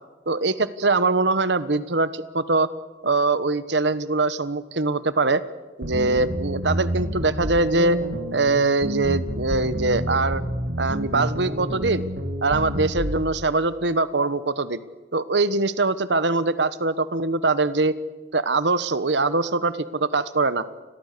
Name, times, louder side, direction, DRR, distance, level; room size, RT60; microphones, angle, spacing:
voice 1, 0.3-2.7 3.0-5.4 5.8-8.0 8.3-10.4 10.8-12.1 12.4-14.8 15.1-17.9 18.3-20.6, right 3 dB, 85° right, 15 dB, 1.2 m, -22 dB
sound 1, 5.8-13.2, equal, 70° right, 2.8 m, -29 dB
29.5 x 22.5 x 6.8 m, 1.2 s
head